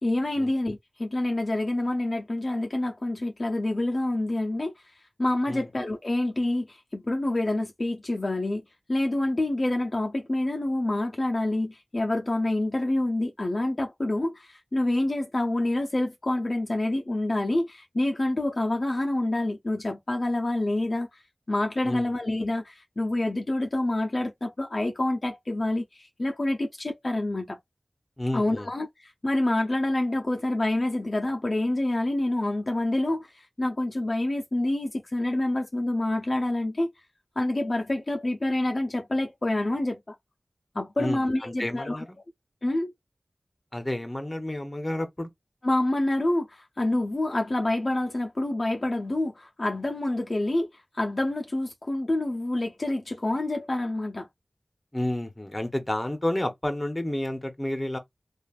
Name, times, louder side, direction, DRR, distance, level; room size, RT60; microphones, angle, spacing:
voice 1, 0.0-8.6 8.9-21.2 21.5-27.6 28.3-36.9 37.4-40.2 40.7-42.0 42.6-42.9 45.6-54.3, left 1 dB, 50° left, 0.5 m, -27 dB
voice 2, 28.2-28.7 41.0-42.2 43.7-45.3 54.9-58.0, left 1 dB, 25° left, 0.9 m, -30 dB
3.2 x 2.4 x 2.4 m
wide cardioid pair, 65°, 0 cm